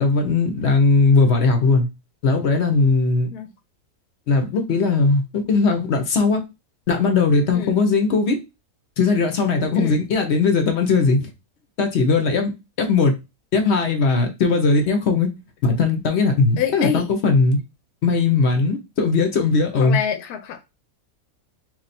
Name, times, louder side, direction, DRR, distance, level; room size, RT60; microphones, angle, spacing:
voice 1, 0.0-1.9 2.2-3.3 4.3-6.4 6.9-8.4 9.0-11.3 11.8-12.5 12.8-13.1 13.5-15.3 15.6-17.6 18.0-20.0, left 4 dB, 55° left, 0.8 m, -19 dB
voice 2, 16.6-17.1 19.8-20.6, left 9 dB, 80° left, 1.1 m, -26 dB
3.2 x 2.6 x 4.1 m
omnidirectional pair, 1.6 m